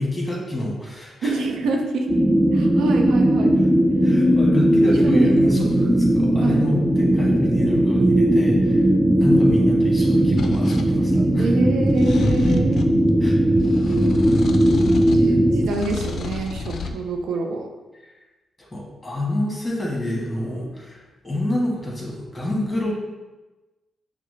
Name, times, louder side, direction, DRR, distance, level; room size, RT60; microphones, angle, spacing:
voice 1, 0.0-1.4 4.0-8.8 9.1-11.5 13.2-13.4 18.6-22.9, left 1 dB, 15° left, -3 dB, 1.4 m, -28 dB
voice 2, 1.2-2.1 2.5-3.5 5.0-5.3 6.4-6.7 11.4-12.8 14.8-17.7, right 3 dB, 80° right, 3 dB, 0.4 m, -26 dB
sound 1, 2.1-15.7, right 1 dB, 10° right, 0.4 m, -18 dB
sound 2, 10.4-10.9 11.9-13.0 13.6-15.3 15.6-17.0, left 4 dB, 65° left, 0.3 m, -30 dB
5.7 x 2.0 x 3.3 m, 1.2 s
cardioid pair, 60°, 0 cm